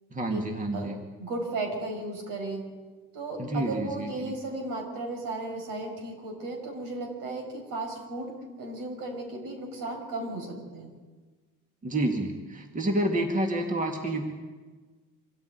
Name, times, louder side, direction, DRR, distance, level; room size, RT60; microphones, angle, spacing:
voice 1, 0.1-1.0 3.4-4.3 11.8-14.3, right 1 dB, 25° right, 3 dB, 2.1 m, -29 dB
voice 2, 1.2-2.8 3.1-10.9, right 2 dB, 75° right, 3 dB, 5.9 m, -35 dB
25.5 x 14.0 x 9.3 m, 1.4 s
cardioid pair, 140°, 33 cm